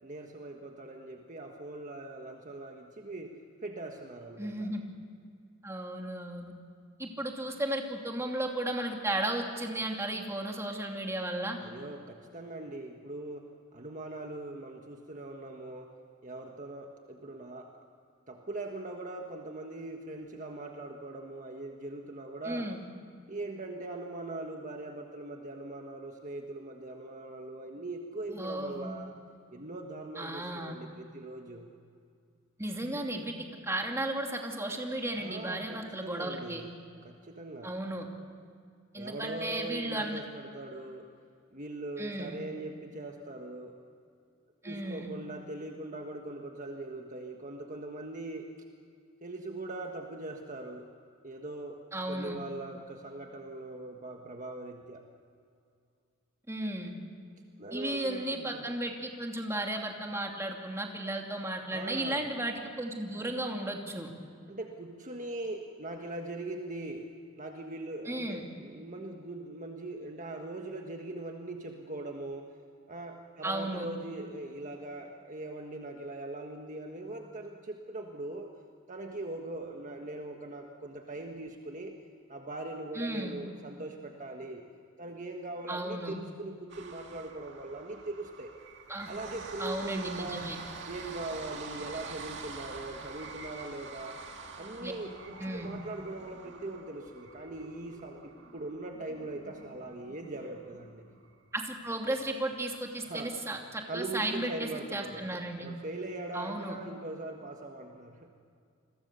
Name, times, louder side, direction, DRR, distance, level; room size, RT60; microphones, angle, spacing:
voice 1, 0.0-3.3 3.6-4.7 11.6-13.4 13.7-15.9 16.2-17.7 18.3-22.7 23.3-29.1 29.5-31.7 35.1-36.8 37.0-37.7 38.9-41.1 41.5-43.8 44.6-48.5 49.2-50.9 51.2-51.8 52.1-55.0 57.6-58.6 61.7-62.3 64.5-67.1 67.4-72.5 72.9-78.5 78.9-82.0 82.3-84.6 85.0-88.5 89.1-90.5 90.8-94.2 94.5-101.1 103.0-103.3 103.9-108.3, right 2 dB, 40° right, 2 dB, 1.5 m, -41 dB
voice 2, 4.4-4.8 5.6-6.5 7.0-11.6 22.4-22.8 28.3-29.1 30.2-30.8 32.6-33.3 33.6-36.6 37.6-38.1 38.9-40.2 42.0-42.4 44.6-45.2 51.9-52.4 56.5-56.9 57.7-64.1 68.1-68.4 73.4-73.9 82.9-83.4 85.7-86.2 88.9-89.1 89.6-90.6 94.8-94.9 95.4-95.7 101.5-105.7 106.3-106.8, right 1 dB, 15° right, 1 dB, 2.7 m, -34 dB
sound 1, 86.7-100.8 101.2-101.3 101.6-101.7, right 4 dB, 60° right, 2.1 m, -46 dB
sound 2, 89.3-102.9, left 1 dB, 40° left, 5.9 m, -56 dB
28.5 x 22.0 x 6.9 m, 2.3 s
head